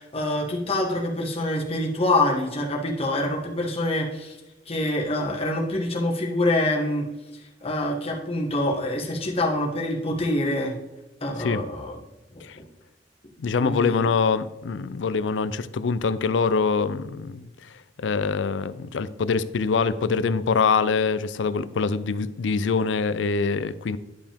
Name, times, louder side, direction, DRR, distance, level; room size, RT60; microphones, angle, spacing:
voice 1, 0.0-4.4 4.7-7.1 7.6-10.7 11.2-12.0 12.3-12.6 13.6-14.0, left 1 dB, 35° left, -1 dB, 1.4 m, -26 dB
voice 2, 13.4-24.0, left 5 dB, 85° left, 15 dB, 0.4 m, -24 dB
11.0 x 5.1 x 3.5 m, 1.0 s
head